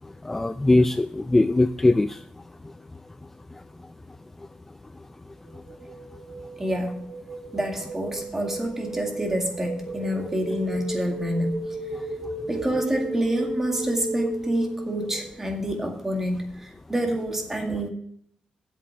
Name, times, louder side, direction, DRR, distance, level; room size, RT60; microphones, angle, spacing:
voice 1, 0.0-2.2 2.6-2.7 3.5-3.6 11.9-12.0, left 2 dB, 15° left, 10 dB, 0.4 m, -21 dB
sound 1, 5.5-15.4, right 1 dB, 70° right, 1.8 m, -35 dB
voice 2, 6.6-7.1 7.5-11.6 12.5-17.9, right 1 dB, 15° right, 3 dB, 2.0 m, -27 dB
8.5 x 7.5 x 5.8 m, 0.68 s
cardioid pair, 125°, 2 cm